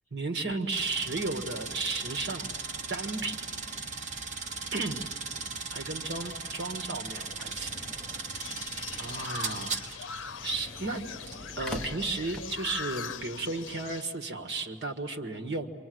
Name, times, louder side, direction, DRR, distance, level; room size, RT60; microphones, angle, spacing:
voice 1, 0.1-2.5 2.9-3.4 4.7-5.0 5.7-7.7 9.0-9.7 10.0-10.1 10.4-11.0 11.6-15.7, right 3 dB, 60° right, 6 dB, 1.7 m, -34 dB
sound 1, 0.7-10.2 11.2-11.4, right 4 dB, 40° right, 1.5 m, -38 dB
sound 2, 6.4-12.8, equal, 5° left, 1.0 m, -45 dB
sound 3, 8.3-14.0, left 6 dB, 90° left, 0.7 m, -41 dB
27.5 x 25.5 x 7.9 m, 2.1 s
head